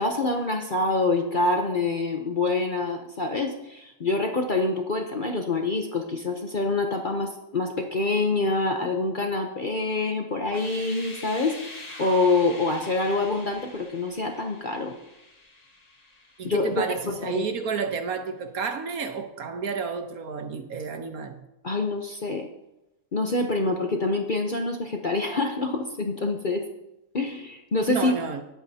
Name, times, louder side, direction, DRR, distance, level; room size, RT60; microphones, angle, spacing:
voice 1, 0.0-15.0 16.4-17.5 21.6-22.5 23.1-26.7 27.1-28.1, left 3 dB, 40° left, 0.8 m, -26 dB
sound 1, 10.4-17.3, left 2 dB, 25° left, 1.5 m, -44 dB
voice 2, 16.4-21.4 27.9-28.4, right 5 dB, 65° right, 1.4 m, -31 dB
19.5 x 8.5 x 2.8 m
omnidirectional pair, 1.7 m